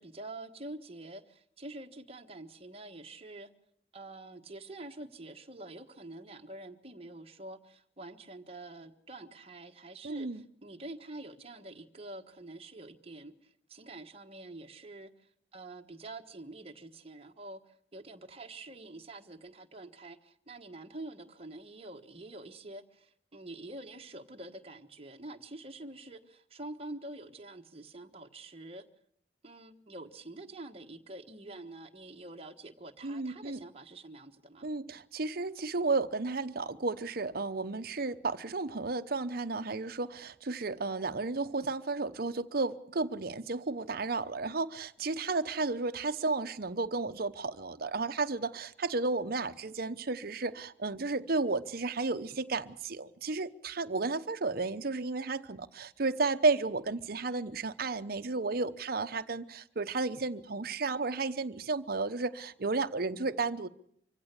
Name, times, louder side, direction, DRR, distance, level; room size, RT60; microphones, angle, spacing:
voice 1, 0.0-3.5 3.9-15.1 15.5-28.8 29.4-34.7, right 2 dB, 35° right, 4 dB, 1.4 m, -46 dB
voice 2, 10.0-10.4 33.0-33.6 34.6-63.7, right 3 dB, 55° right, 10 dB, 0.9 m, -33 dB
25.0 x 16.0 x 8.3 m, 0.66 s
head